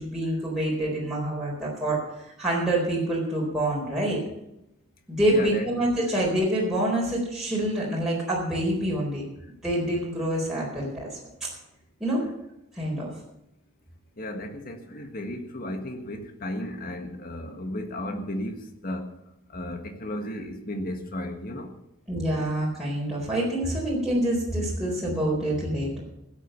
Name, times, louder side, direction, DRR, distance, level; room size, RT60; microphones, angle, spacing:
voice 1, 0.0-4.2 5.1-9.2 9.6-11.1 11.4-11.5 12.0-12.2 12.7-13.1 22.1-26.0, right 1 dB, 5° right, -6 dB, 4.3 m, -26 dB
voice 2, 5.3-5.9 14.2-19.1 19.5-21.7, left 1 dB, 45° left, 5 dB, 1.7 m, -34 dB
16.0 x 8.4 x 7.0 m, 0.86 s
head